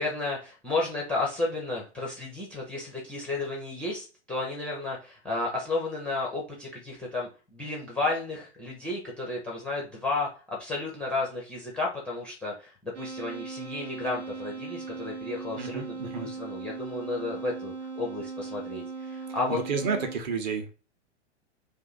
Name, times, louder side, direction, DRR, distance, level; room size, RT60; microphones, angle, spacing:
voice 1, 0.0-19.6, left 2 dB, 5° left, -2 dB, 0.4 m, -32 dB
sound 1, 12.9-20.2, right 4 dB, 80° right, 1.0 m, -39 dB
voice 2, 15.6-16.3 19.5-20.7, right 5 dB, 40° right, 5 dB, 0.8 m, -31 dB
2.6 x 2.5 x 3.9 m, 0.35 s
figure-of-eight pair, 105°, 35 cm